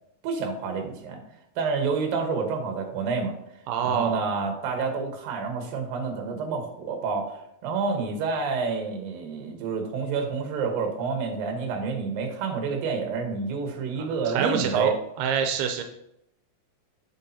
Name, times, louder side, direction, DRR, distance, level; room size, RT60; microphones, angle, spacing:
voice 1, 0.2-1.2 1.6-3.4 3.8-14.9, right 5 dB, 70° right, 3 dB, 2.9 m, -28 dB
voice 2, 3.7-4.2 14.0-14.9 15.2-15.8, right 7 dB, 90° right, 5 dB, 2.6 m, -26 dB
8.4 x 7.6 x 2.8 m, 0.80 s
omnidirectional pair, 4.4 m